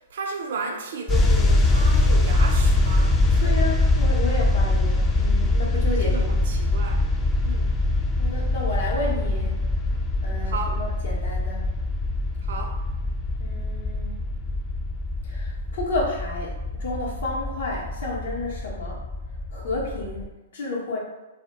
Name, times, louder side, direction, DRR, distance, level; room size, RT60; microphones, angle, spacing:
voice 1, 0.0-3.6 6.0-7.0 7.4-7.8 10.4-10.8 12.4-12.8, right 4 dB, 65° right, 2 dB, 0.4 m, -34 dB
sound 1, 1.1-20.3, left 2 dB, 15° left, 0.3 m, -23 dB
voice 2, 3.4-6.3 8.2-9.6 10.2-11.6 13.4-14.3 15.2-19.0 19.5-21.0, left 2 dB, 70° left, -4 dB, 0.6 m, -31 dB
2.1 x 2.0 x 2.8 m, 1.1 s
hypercardioid pair, 115°, 0 cm